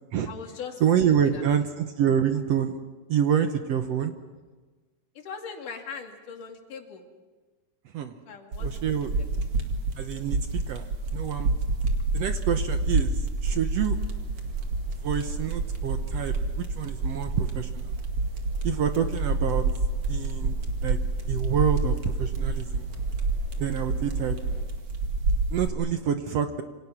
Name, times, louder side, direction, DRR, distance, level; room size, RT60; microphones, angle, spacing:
voice 1, 0.3-1.4 5.2-7.0 8.3-8.9, left 6 dB, 75° left, 2 dB, 4.0 m, -40 dB
voice 2, 0.8-2.8 3.1-4.1 7.9-8.2 8.6-9.1 10.0-11.5 12.1-14.0 14.9-17.9 18.6-19.7 20.1-21.0 21.3-22.9 23.6-24.4 25.5-26.6, right 8 dB, 65° right, 7 dB, 1.8 m, -27 dB
sound 1, 8.5-25.7, right 3 dB, 50° right, 2.9 m, -28 dB
sound 2, 13.9-24.6, equal, 20° left, 8.1 m, -47 dB
28.0 x 26.0 x 6.0 m, 1.3 s
omnidirectional pair, 3.7 m